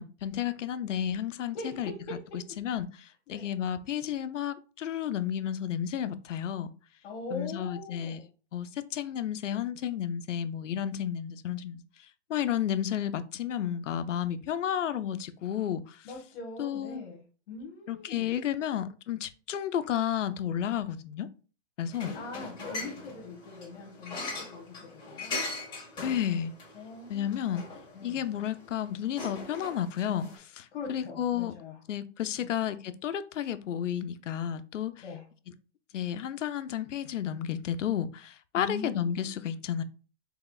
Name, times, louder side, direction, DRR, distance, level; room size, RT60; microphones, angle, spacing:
voice 1, 0.0-1.9 2.6-6.7 7.3-8.2 8.5-11.8 12.3-16.1 16.6-17.0 17.9-21.3 21.8-22.2 26.0-26.5 27.1-27.6 28.0-31.5 31.9-35.0 35.9-39.8, left 9 dB, 85° left, 0.6 m, -32 dB
voice 2, 1.5-2.1 3.3-3.5 7.0-8.3 16.0-18.3 22.1-25.3 26.7-27.4 27.9-28.3 30.7-31.8 32.4-32.5 35.0-35.2 38.5-39.3, left 3 dB, 60° left, 1.4 m, -42 dB
sound 1, 21.9-30.4, left 3 dB, 10° left, 1.6 m, -41 dB
4.8 x 3.5 x 2.3 m
hypercardioid pair, 145°, 36 cm